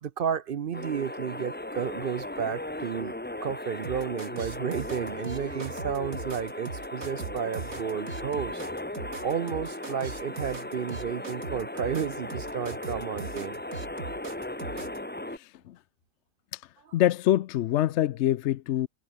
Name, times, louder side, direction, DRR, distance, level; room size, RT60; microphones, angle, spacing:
voice 1, 0.0-3.1 3.4-8.6 9.2-13.6 14.3-14.6, right 7 dB, 50° right, 0.7 m, -32 dB
sound 1, 0.7-15.4, left 1 dB, 10° left, 0.9 m, -37 dB
sound 2, 3.8-15.0, right 4 dB, 90° right, 3.2 m, -40 dB
voice 2, 15.3-15.8 16.5-16.6 16.9-18.9, left 13 dB, 65° left, 0.8 m, -25 dB
omnidirectional pair, 1.4 m